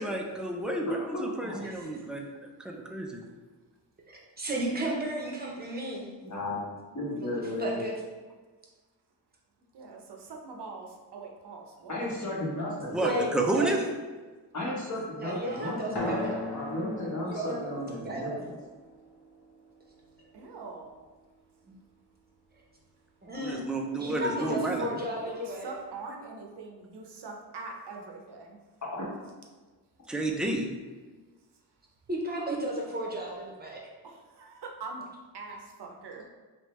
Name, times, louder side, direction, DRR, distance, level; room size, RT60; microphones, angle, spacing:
voice 1, 0.0-2.2 2.9-3.1 12.9-13.8 23.4-24.9 30.1-30.7, right 2 dB, ahead, 0 dB, 0.3 m, -30 dB
voice 2, 0.8-1.6 6.2-7.8 11.9-13.0 14.5-16.2 16.5-18.5, left 1 dB, 40° left, -4 dB, 1.1 m, -34 dB
voice 3, 1.6-2.0 4.4-6.1 7.2-7.3 7.6-7.9 13.0-13.8 15.2-16.3 17.2-18.4 23.2-23.6 24.0-25.7 32.1-33.3 33.6-33.8, right 1 dB, 20° right, -2 dB, 0.7 m, -33 dB
voice 4, 9.7-12.2 12.8-12.9 20.3-20.9 24.2-24.5 24.8-28.6 34.0-35.1 35.3-36.3, right 4 dB, 70° right, 1 dB, 0.6 m, -43 dB
sound 1, 15.9-21.0, left 1 dB, 65° left, 0.8 m, -39 dB
3.4 x 3.1 x 3.0 m, 1.3 s
wide cardioid pair, 120°, 42 cm